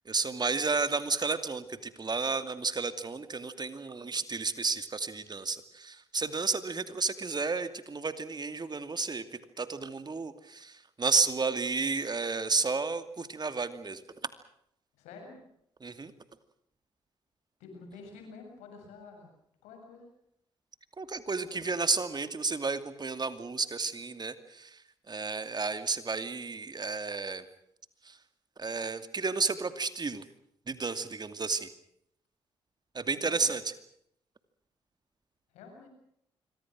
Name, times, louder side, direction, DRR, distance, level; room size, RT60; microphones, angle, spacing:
voice 1, 0.1-9.2 9.6-14.0 15.8-16.1 21.0-24.8 25.1-27.4 28.1-28.2 28.6-30.2 30.7-31.7 32.9-33.6, right 4 dB, 35° right, 11 dB, 2.5 m, -32 dB
voice 2, 15.0-15.4 17.6-19.3 19.6-20.1 33.2-33.5 35.5-35.9, left 4 dB, 85° left, 4 dB, 7.3 m, -48 dB
26.0 x 24.0 x 6.2 m, 0.73 s
supercardioid pair, 50°, 12 cm